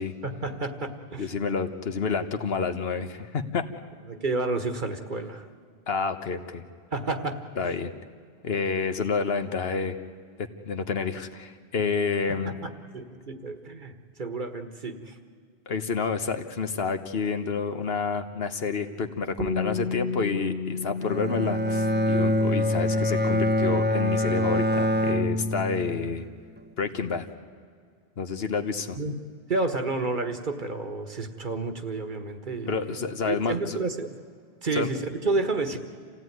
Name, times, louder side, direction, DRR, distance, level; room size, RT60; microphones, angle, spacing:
voice 1, 0.2-1.3 4.1-5.5 6.9-7.7 12.3-15.2 19.8-20.0 28.9-29.2 29.5-33.0 33.3-34.2 34.6-35.8, right 3 dB, 50° right, 7 dB, 1.6 m, -30 dB
voice 2, 1.2-3.6 5.9-6.6 7.6-7.9 8.4-10.0 10.4-12.6 15.7-26.2 26.8-27.3 28.2-29.0 32.7-33.8 34.7-34.9, left 5 dB, 75° left, 8 dB, 1.4 m, -29 dB
Bass guitar, 19.4-25.6, left 4 dB, 85° right, 2.3 m, -35 dB
Bowed string instrument, 21.0-26.2, equal, 10° right, 0.6 m, -25 dB
27.5 x 16.5 x 9.6 m, 2.1 s
omnidirectional pair, 1.0 m